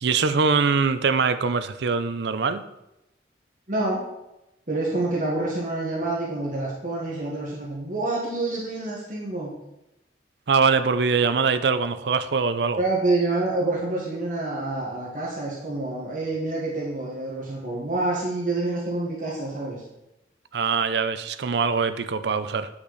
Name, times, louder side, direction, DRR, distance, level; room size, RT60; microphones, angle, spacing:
voice 1, 0.0-2.6 10.5-12.8 20.5-22.7, right 5 dB, 70° right, 11 dB, 0.5 m, -23 dB
voice 2, 3.7-4.0 4.7-9.6 12.8-19.8, right 2 dB, 45° right, -4 dB, 1.5 m, -27 dB
8.2 x 5.8 x 4.0 m, 0.92 s
head